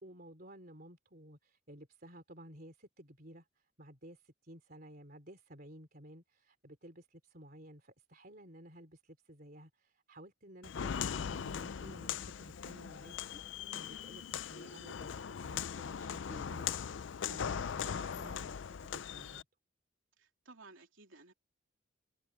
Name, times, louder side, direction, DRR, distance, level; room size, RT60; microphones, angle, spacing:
voice 1, 0.0-19.5, right 1 dB, 45° right, 3.6 m, -54 dB
Walk footsteps, 10.6-19.4, left 7 dB, 60° left, 0.4 m, -40 dB
voice 2, 20.2-21.3, right 3 dB, 70° right, 3.2 m, -57 dB
head